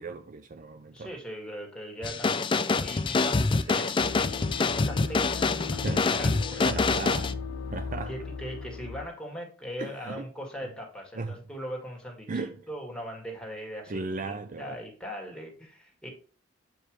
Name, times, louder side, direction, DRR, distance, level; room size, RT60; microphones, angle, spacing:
voice 1, 0.0-1.1 3.7-4.0 5.8-6.1 6.5-7.3 7.7-8.1 9.8-10.2 11.1-11.4 12.3-12.7 13.9-14.8, right 3 dB, 40° right, 0.4 m, -36 dB
voice 2, 0.9-6.7 8.1-16.1, equal, 5° left, 1.9 m, -40 dB
sound 1, 2.0-7.3, left 4 dB, 25° left, 0.4 m, -26 dB
sound 2, 4.0-9.1, left 5 dB, 85° left, 0.5 m, -37 dB
7.6 x 5.0 x 3.1 m
head